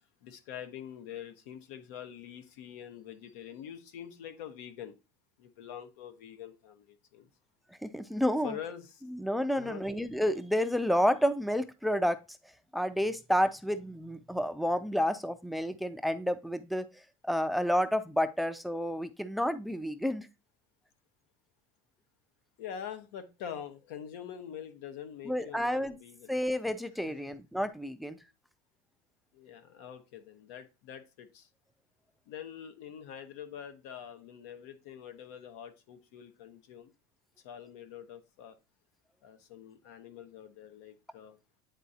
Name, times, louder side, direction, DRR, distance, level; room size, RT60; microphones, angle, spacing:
voice 1, 0.2-4.9 5.4-7.3 8.4-9.0 9.5-9.9 22.6-26.3 29.3-31.5 32.3-36.9 37.4-38.6 39.2-41.4, left 9 dB, 90° left, 9 dB, 1.1 m, -45 dB
voice 2, 7.8-8.6 9.1-12.2 12.7-16.9 17.2-20.3 25.3-26.0 26.3-28.2, equal, ahead, 12 dB, 0.3 m, -30 dB
9.2 x 3.8 x 2.8 m, 0.28 s
cardioid pair, 160°, 9 cm